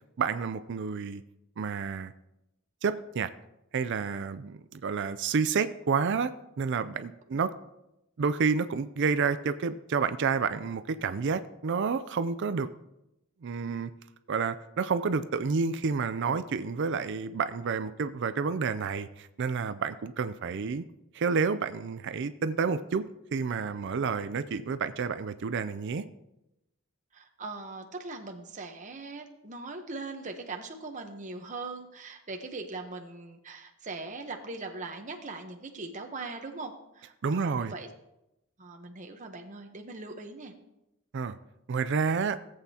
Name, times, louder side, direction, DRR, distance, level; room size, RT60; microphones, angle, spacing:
voice 1, 0.2-1.2 1.6-2.1 2.8-3.3 3.7-6.3 6.6-7.5 8.2-12.7 13.4-13.9 14.3-20.8 21.1-23.0 23.3-26.0 37.2-37.7 41.1-41.4 41.7-42.4, right 5 dB, 55° right, 12 dB, 0.4 m, -29 dB
voice 2, 27.1-37.9 38.6-40.5, right 3 dB, 35° right, 4 dB, 0.9 m, -40 dB
17.5 x 8.1 x 2.9 m, 0.90 s
head